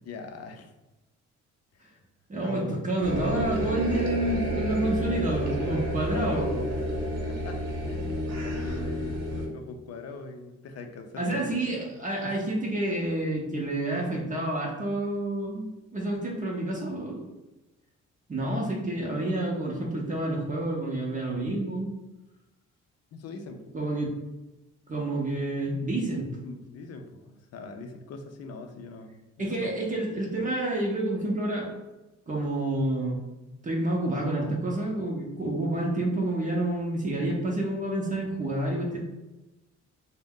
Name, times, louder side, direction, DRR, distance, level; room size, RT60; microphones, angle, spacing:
voice 1, 0.0-0.7 1.7-2.0 2.4-2.8 5.3-11.5 12.2-12.4 23.1-23.7 26.4-29.8, left 3 dB, 55° left, 5 dB, 0.5 m, -41 dB
voice 2, 2.3-6.5 11.2-17.2 18.3-21.9 23.7-24.1 24.9-26.3 29.4-31.7 32.3-33.2 33.6-39.0, right 1 dB, 25° right, -2 dB, 0.6 m, -29 dB
sound 1, 3.0-9.5, equal, 55° right, 0.9 m, -30 dB
2.5 x 2.1 x 3.6 m, 1.0 s
cardioid pair, 90°, 30 cm